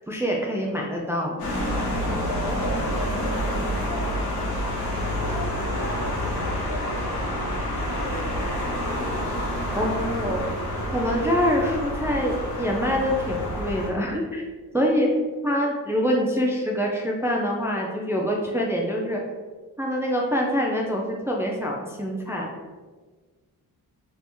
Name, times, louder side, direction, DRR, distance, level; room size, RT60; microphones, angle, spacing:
voice 1, 0.1-1.5 2.1-2.2 9.7-10.5 10.9-14.4 14.7-15.1 15.4-19.2 19.8-22.5, equal, 5° right, -1 dB, 0.4 m, -25 dB
sound 1, 1.4-13.9, equal, 80° left, 1.1 m, -28 dB
voice 2, 2.2-4.5 5.2-8.7, left 2 dB, 55° left, -2 dB, 0.9 m, -38 dB
2.9 x 2.5 x 3.5 m, 1.4 s
cardioid pair, 65°, 38 cm